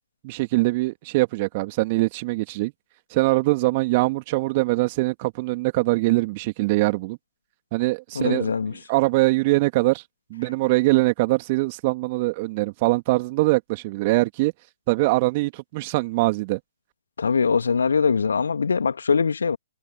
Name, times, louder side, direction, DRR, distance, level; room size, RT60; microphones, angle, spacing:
voice 1, 0.2-2.7 3.1-7.2 7.7-8.5 8.9-10.0 10.3-14.5 14.9-16.6, right 22 dB, 40° right, 2.9 m, -22 dB
voice 2, 8.1-8.7 17.2-19.6, left 5 dB, 70° left, 2.1 m, -22 dB
figure-of-eight pair, 120°, 0 cm